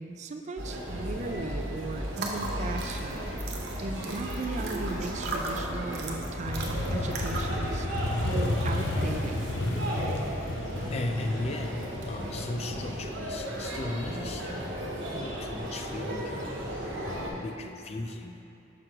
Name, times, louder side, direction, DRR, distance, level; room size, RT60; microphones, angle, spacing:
voice 1, 0.0-3.3 3.8-7.9 8.1-9.4, right 3 dB, 40° right, 5 dB, 0.4 m, -37 dB
sound 1, 0.6-17.3, equal, 85° right, 1.1 m, -35 dB
sound 2, 2.1-7.6, right 3 dB, 60° right, 0.7 m, -38 dB
Motorcycle, 6.5-14.1, left 2 dB, 85° left, 0.6 m, -32 dB
voice 2, 10.9-11.8 12.1-14.7 15.1-16.5 17.1-18.4, left 2 dB, 35° left, 5 dB, 0.4 m, -36 dB
6.0 x 4.9 x 4.5 m, 2.8 s
head